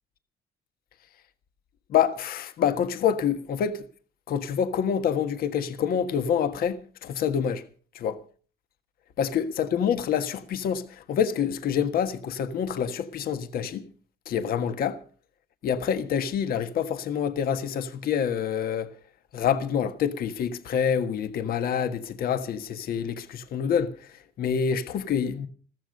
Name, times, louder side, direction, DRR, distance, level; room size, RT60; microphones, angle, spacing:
voice 1, 1.9-3.8 4.3-7.6 7.9-8.2 9.2-13.9 14.3-15.0 15.6-19.0 19.3-24.1 24.4-25.5, left 8 dB, 60° left, 1.5 m, -27 dB
14.5 x 14.5 x 5.3 m
cardioid pair, 110°, 17 cm